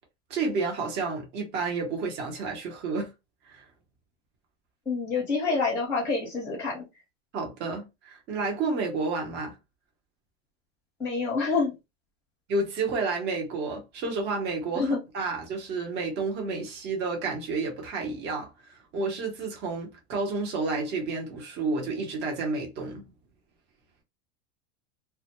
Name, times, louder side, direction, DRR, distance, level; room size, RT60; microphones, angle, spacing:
voice 1, 0.3-3.1 3.4-3.6 7.3-9.6 12.5-23.1, right 3 dB, 30° right, 0.8 m, -30 dB
voice 2, 4.9-6.8 11.0-11.7 14.8-15.0, left 4 dB, 10° left, 0.8 m, -27 dB
2.2 x 2.0 x 2.8 m
supercardioid pair, 145°, 34 cm